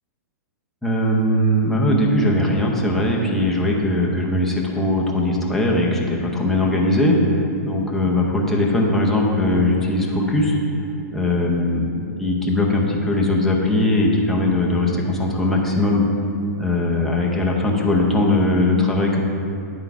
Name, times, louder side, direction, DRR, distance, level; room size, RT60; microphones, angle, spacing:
voice 1, 0.8-10.6 11.1-16.0 16.6-19.2, left 1 dB, 5° left, -3 dB, 0.7 m, -20 dB
9.0 x 3.8 x 4.7 m, 2.5 s
hypercardioid pair, 155°, 9 cm